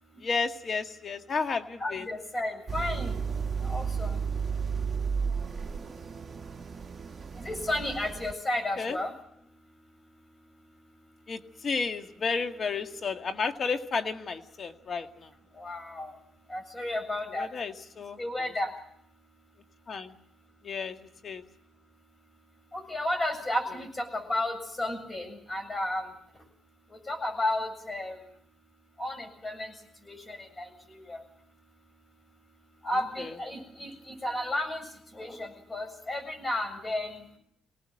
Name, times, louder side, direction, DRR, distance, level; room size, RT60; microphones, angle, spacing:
voice 1, 0.2-2.1 8.8-9.0 11.3-15.3 17.3-18.2 19.9-20.1 20.6-21.0 21.2-21.4 33.2-33.4, left 5 dB, 45° left, 7 dB, 1.9 m, -32 dB
voice 2, 1.8-3.2 3.6-4.2 7.4-9.1 15.6-16.1 16.5-17.5 18.2-18.7 22.7-26.1 27.1-28.2 29.0-29.7 30.1-30.7 31.1-31.2 32.8-34.9 35.1-37.2, left 1 dB, 25° left, 6 dB, 7.5 m, -32 dB
sound 1, 2.7-8.3, right 6 dB, 30° right, 1.5 m, -33 dB
25.5 x 18.5 x 7.7 m, 0.70 s
cardioid pair, 90°, 0 cm